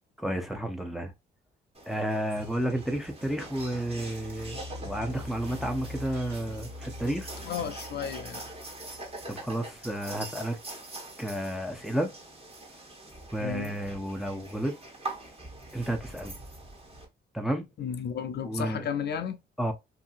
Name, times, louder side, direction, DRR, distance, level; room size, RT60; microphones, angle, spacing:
voice 1, 0.2-1.1 1.9-7.3 9.3-10.6 11.2-12.1 13.3-14.7 15.7-16.3 17.3-17.6 18.4-18.9 19.6-19.7, right 1 dB, ahead, 0.7 m, -31 dB
sound 1, 1.7-17.0, right 2 dB, 30° right, 1.3 m, -44 dB
sound 2, 2.4-7.8, right 3 dB, 60° right, 0.8 m, -49 dB
sound 3, 3.4-9.6, left 2 dB, 30° left, 0.9 m, -44 dB
voice 2, 7.4-8.5 13.4-13.8 17.8-19.4, left 7 dB, 55° left, 0.5 m, -33 dB
2.7 x 2.6 x 2.4 m
cardioid pair, 90°, 20 cm